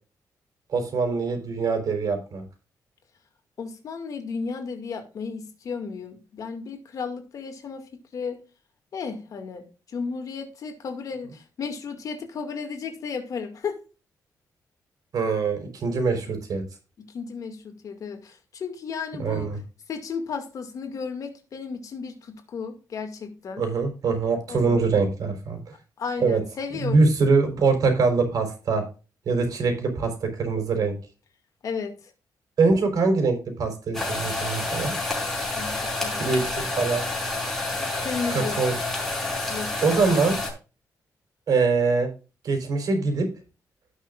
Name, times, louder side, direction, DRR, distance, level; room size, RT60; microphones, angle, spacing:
voice 1, 0.7-2.4 15.1-16.6 19.2-19.6 23.6-25.6 26.2-26.4 26.8-28.8 29.3-31.0 32.6-35.0 36.2-37.0 38.3-38.7 39.8-40.4 41.5-42.1 42.4-43.3, right 4 dB, 65° right, 4.1 m, -23 dB
voice 2, 3.6-7.8 8.1-8.4 8.9-9.7 9.9-13.8 17.0-19.5 19.9-23.6 24.5-24.8 26.0-27.1 31.6-31.9 35.5-36.4 38.0-38.6 39.4-39.7, left 5 dB, 55° left, 2.2 m, -34 dB
sound 1, 33.9-40.5, left 2 dB, 10° left, 5.3 m, -29 dB
17.0 x 6.3 x 2.5 m
wide cardioid pair, 155°, 7 cm